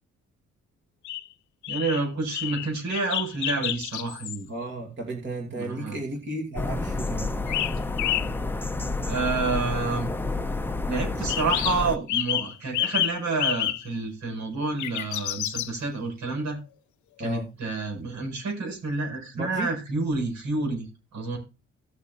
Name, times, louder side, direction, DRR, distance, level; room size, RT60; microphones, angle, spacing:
sound 1, 1.0-1.3 1.6-2.0 2.3-4.4 7.5-8.3 11.3-11.8 12.1-13.9 14.8-15.7, left 13 dB, 75° left, 0.7 m, -29 dB
voice 1, 1.7-4.5 5.5-6.0 9.0-10.1 10.9-16.6 17.2-21.4, right 3 dB, 65° right, 5.4 m, -29 dB
voice 2, 4.5-7.4 17.2-17.6 19.3-19.7, right 1 dB, 40° right, 2.6 m, -34 dB
sound 2, 6.6-12.0, left 3 dB, 5° left, 0.7 m, -30 dB
17.5 x 6.7 x 2.6 m
cardioid pair, 90°, 30 cm